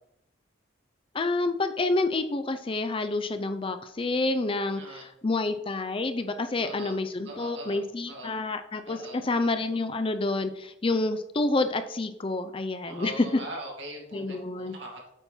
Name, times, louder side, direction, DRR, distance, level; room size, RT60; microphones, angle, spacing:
voice 1, 1.1-13.4 14.1-14.8, left 2 dB, 30° left, 9 dB, 0.5 m, -28 dB
voice 2, 6.6-6.9 7.2-7.8 8.1-8.3 8.9-9.2 12.8-15.1, right 1 dB, 70° right, -1 dB, 2.5 m, -41 dB
8.1 x 4.4 x 5.5 m, 0.78 s
head